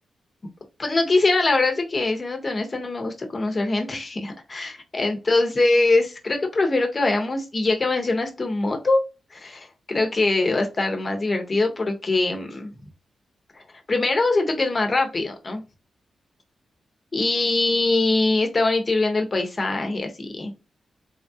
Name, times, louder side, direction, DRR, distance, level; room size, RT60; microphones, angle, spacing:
voice 1, 0.8-9.0 9.3-12.7 13.5-15.6 17.1-20.5, left 2 dB, 40° left, 4 dB, 1.0 m, -23 dB
3.2 x 2.4 x 2.7 m, 0.29 s
cardioid pair, 65°, 0 cm